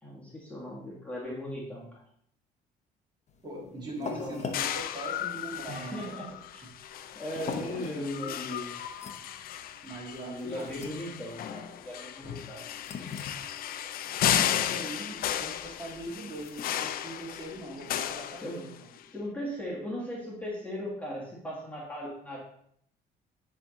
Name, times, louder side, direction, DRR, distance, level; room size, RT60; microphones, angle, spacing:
voice 1, 0.0-2.0 3.6-3.7 4.0-4.4 5.7-6.3 6.5-6.7 7.1-8.7 10.2-12.6 12.9-13.2 18.4-18.6 19.1-22.4, left 1 dB, 10° left, -5 dB, 1.8 m, -38 dB
sound 1, 3.3-18.3, left 5 dB, 40° left, 1.0 m, -44 dB
voice 2, 3.4-6.1 7.5-7.6 9.8-10.7 14.2-18.9, right 1 dB, 25° right, -3 dB, 2.5 m, -41 dB
sound 2, 4.5-19.0, left 10 dB, 60° left, 0.5 m, -34 dB
9.7 x 3.5 x 4.0 m, 0.68 s
cardioid pair, 110°, 17 cm